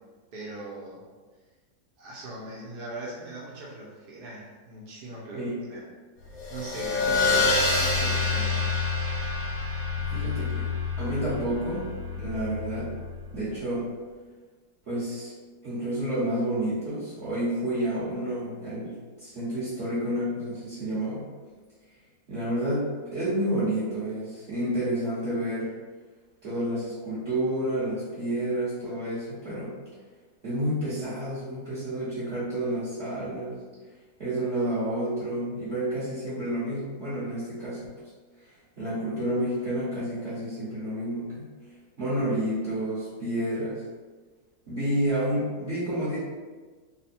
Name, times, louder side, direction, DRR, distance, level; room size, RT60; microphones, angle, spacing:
voice 1, 0.3-1.0 2.0-5.8 6.5-8.6, right 2 dB, 75° right, -4 dB, 1.3 m, -40 dB
sound 1, 6.3-13.4, left 3 dB, 75° left, 1.3 m, -27 dB
voice 2, 10.1-13.0 13.3-13.9 14.9-15.3 15.6-21.2 22.3-25.7 26.4-29.7 30.4-33.6 34.2-37.9 38.8-43.8 44.7-46.2, right 1 dB, 45° right, -12 dB, 1.3 m, -30 dB
3.5 x 2.1 x 4.2 m, 1.4 s
omnidirectional pair, 1.8 m